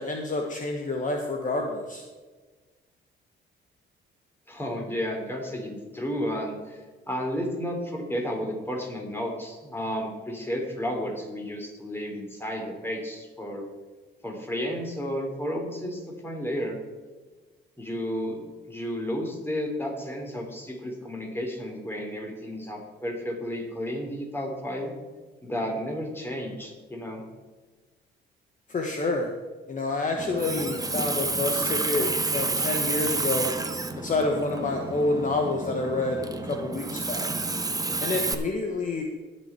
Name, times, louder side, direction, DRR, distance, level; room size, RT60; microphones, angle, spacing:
voice 1, 0.0-2.0 28.7-29.3 29.7-33.5 34.0-37.3 38.0-39.0, left 2 dB, 40° left, 2 dB, 1.3 m, -28 dB
voice 2, 4.5-6.8 7.1-13.7 14.2-16.8 17.8-18.4 18.7-24.9 25.4-27.2, equal, 10° left, 1 dB, 3.5 m, -32 dB
Water tap faucet, 30.2-38.3, right 3 dB, 20° right, 1.1 m, -30 dB
18.5 x 6.5 x 4.5 m, 1.3 s
cardioid pair, 90°, 20 cm